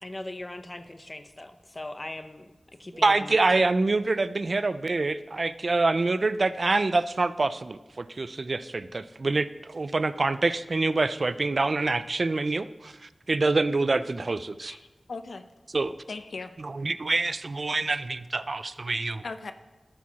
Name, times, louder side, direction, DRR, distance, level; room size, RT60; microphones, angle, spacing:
voice 1, 0.0-2.5 2.8-3.4, left 1 dB, 30° left, 9 dB, 0.7 m, -39 dB
voice 2, 3.0-14.8 15.7-15.9 16.6-19.2, right 3 dB, 55° right, 14 dB, 0.3 m, -26 dB
voice 3, 14.6-15.5 16.1-16.5 19.2-19.5, left 3 dB, 80° left, 9 dB, 0.6 m, -39 dB
12.5 x 4.7 x 5.8 m, 1.1 s
wide cardioid pair, 80°, 0 cm